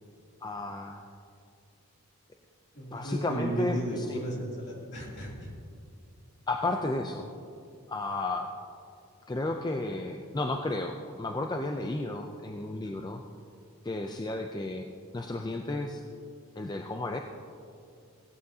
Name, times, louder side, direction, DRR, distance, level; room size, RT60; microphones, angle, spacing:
voice 1, 0.4-1.0 2.9-4.2 6.5-7.3 7.9-8.5 9.3-13.2 13.8-14.9 15.1-16.0 16.6-17.2, left 2 dB, 20° left, 4 dB, 0.4 m, -33 dB
voice 2, 2.7-5.5, right 1 dB, 50° left, -3 dB, 2.8 m, -34 dB
17.0 x 12.5 x 2.8 m, 2.4 s
head